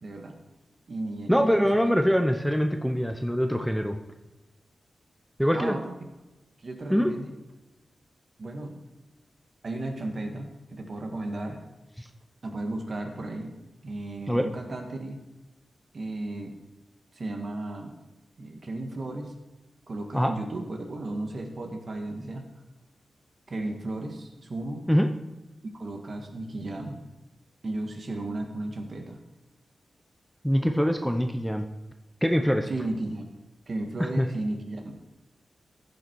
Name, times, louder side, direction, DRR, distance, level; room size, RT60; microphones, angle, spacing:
voice 1, 0.0-0.4 0.9-1.9 5.5-5.9 6.6-7.3 8.4-8.8 9.6-11.6 12.4-13.6 13.8-15.2 15.9-16.5 17.1-17.9 18.4-19.3 19.9-22.4 23.5-24.8 25.7-27.0 27.6-29.2 32.7-33.3 33.7-34.9, right 2 dB, 50° right, 3 dB, 1.7 m, -34 dB
voice 2, 1.3-4.0 5.4-5.8 6.9-7.1 12.0-12.1 14.3-14.5 20.1-20.3 24.9-25.1 30.4-31.6 32.2-32.7 34.2-34.3, equal, ahead, 5 dB, 0.7 m, -23 dB
15.0 x 6.6 x 4.6 m, 1.1 s
wide cardioid pair, 110°, 0 cm